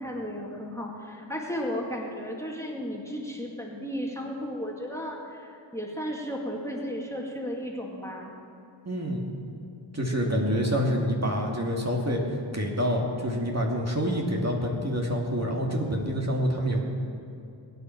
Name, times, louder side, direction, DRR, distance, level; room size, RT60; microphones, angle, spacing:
voice 1, 0.0-8.3 10.2-10.9, equal, 5° left, -1 dB, 2.2 m, -34 dB
voice 2, 8.9-9.3 9.9-16.8, equal, 35° right, -1 dB, 2.1 m, -27 dB
22.0 x 9.3 x 4.5 m, 2.6 s
cardioid pair, 45°, 47 cm